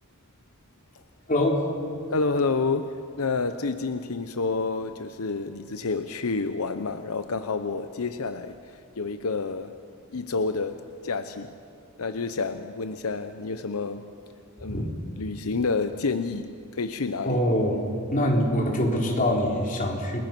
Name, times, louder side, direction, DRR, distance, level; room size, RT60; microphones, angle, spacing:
voice 1, 1.3-1.6 14.6-14.9 17.2-17.8 18.1-20.2, left 1 dB, 35° left, -1 dB, 3.8 m, -24 dB
voice 2, 2.1-9.7 10.1-11.5 12.0-14.1 14.6-14.9 15.2-17.4, left 4 dB, 80° left, 9 dB, 0.8 m, -29 dB
29.5 x 20.5 x 6.1 m, 2.5 s
head